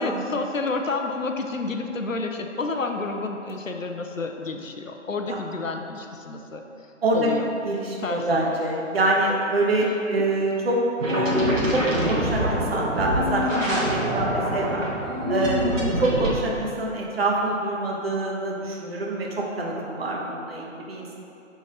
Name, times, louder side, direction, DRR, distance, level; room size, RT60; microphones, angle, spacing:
voice 1, 0.0-6.6 7.1-7.5 8.0-8.6, left 3 dB, 85° left, 4 dB, 0.7 m, -30 dB
voice 2, 7.0-7.3 7.6-10.8 11.0-11.8 12.1-14.9 15.3-21.2, right 2 dB, 50° right, -2 dB, 1.2 m, -25 dB
sound 1, 11.0-16.3, equal, 80° right, 1.4 m, -25 dB
7.1 x 4.2 x 3.7 m, 2.8 s
figure-of-eight pair, 135°, 38 cm